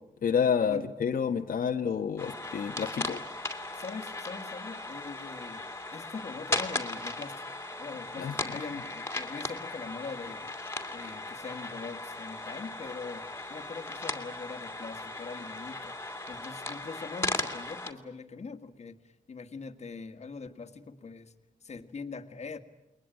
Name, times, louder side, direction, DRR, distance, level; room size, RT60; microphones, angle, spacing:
voice 1, 0.2-3.2 8.2-8.3, left 7 dB, 85° left, 4 dB, 1.4 m, -29 dB
sound 1, 2.2-17.9, left 2 dB, 15° left, 2.4 m, -37 dB
voice 2, 3.7-10.6 10.9-15.9 16.3-19.0 19.3-21.3 21.6-22.6, left 4 dB, 50° left, 7 dB, 1.8 m, -42 dB
29.0 x 22.0 x 9.0 m, 0.89 s
wide cardioid pair, 125°, 14 cm